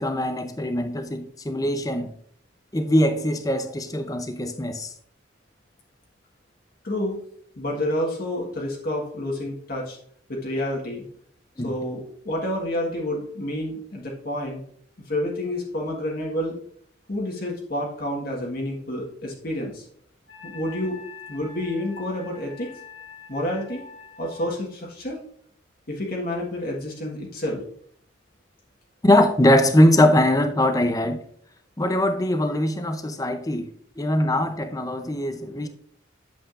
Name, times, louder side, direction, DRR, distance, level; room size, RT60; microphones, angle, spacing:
voice 1, 0.0-2.1 2.7-4.9 11.6-11.7 29.0-31.2 31.8-33.7 34.0-35.7, left 1 dB, 20° left, 0.6 m, -21 dB
voice 2, 6.8-7.2 7.6-10.0 10.3-11.0 11.6-14.6 15.1-16.6 17.1-19.8 20.4-21.0 21.3-22.7 23.3-23.8 24.2-25.2 25.9-27.6, left 1 dB, 50° left, 1.5 m, -29 dB
Wind instrument woodwind instrument, 20.3-24.5, left 5 dB, 65° left, 2.3 m, -44 dB
8.6 x 7.4 x 2.5 m
head